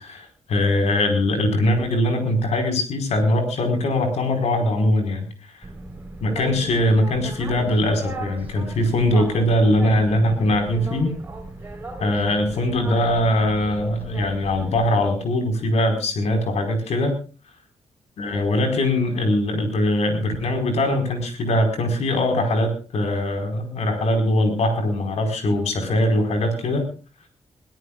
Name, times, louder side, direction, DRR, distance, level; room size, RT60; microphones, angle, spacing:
voice 1, 0.0-5.3 6.2-11.1 12.0-17.2 18.2-26.9, left 1 dB, 80° left, 5 dB, 4.8 m, -21 dB
Boat Water vehicle, 5.6-14.9, right 2 dB, 15° right, 4.2 m, -36 dB
22.5 x 17.0 x 2.4 m, 0.35 s
wide cardioid pair, 125°, 11 cm